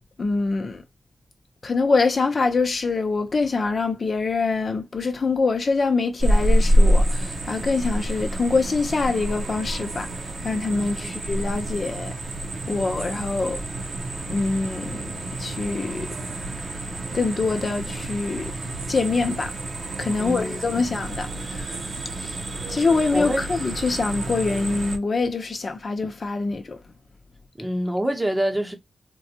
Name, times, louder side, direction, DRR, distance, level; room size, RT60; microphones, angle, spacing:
voice 1, 0.2-0.8 1.6-10.1 10.4-12.1 12.7-13.6 14.3-16.1 17.1-18.5 18.9-19.5 20.0-21.8 22.2-22.3 22.7-26.8, left 4 dB, 45° left, 0.7 m, -24 dB
sound 1, 6.2-25.0, right 1 dB, 60° right, 0.6 m, -27 dB
voice 2, 10.8-11.1 20.2-20.9 23.1-23.4 27.6-28.7, right 1 dB, 10° right, 0.9 m, -27 dB
3.9 x 2.3 x 2.8 m
wide cardioid pair, 115°, 0 cm